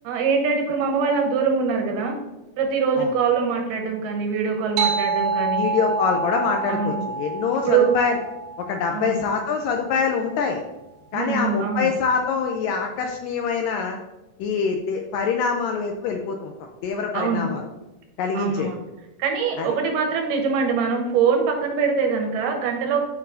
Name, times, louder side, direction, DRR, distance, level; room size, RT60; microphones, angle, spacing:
voice 1, 0.0-2.2 2.6-5.7 6.7-7.1 7.7-7.9 8.9-9.1 11.1-11.9 17.1-17.5 18.3-18.8 19.2-23.0, right 5 dB, 70° right, 2 dB, 2.3 m, -23 dB
sound 1, 4.8-9.7, right 4 dB, 90° right, 2.7 m, -27 dB
voice 2, 5.6-8.2 8.6-10.6 11.1-14.0 14.4-16.5 16.8-17.6 18.2-18.7 19.6-19.7, left 5 dB, 90° left, 3 dB, 2.0 m, -25 dB
12.0 x 5.6 x 2.6 m, 1.0 s
omnidirectional pair, 4.5 m